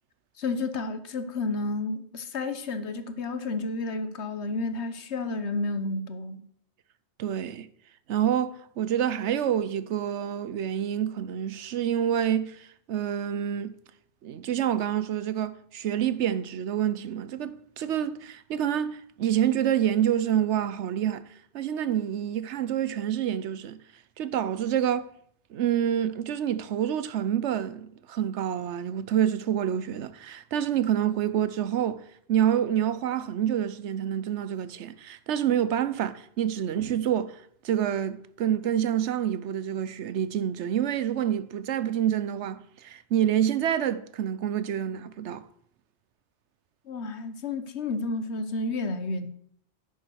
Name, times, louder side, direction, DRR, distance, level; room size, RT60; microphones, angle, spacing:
voice 1, 0.4-6.4 46.9-49.3, left 3 dB, 75° left, 1.3 m, -31 dB
voice 2, 7.2-7.7 8.1-13.7 14.2-21.2 21.5-23.8 24.2-25.1 25.5-32.0 32.3-45.4, right 10 dB, 90° right, 1.0 m, -27 dB
10.5 x 7.2 x 6.4 m
omnidirectional pair, 1.1 m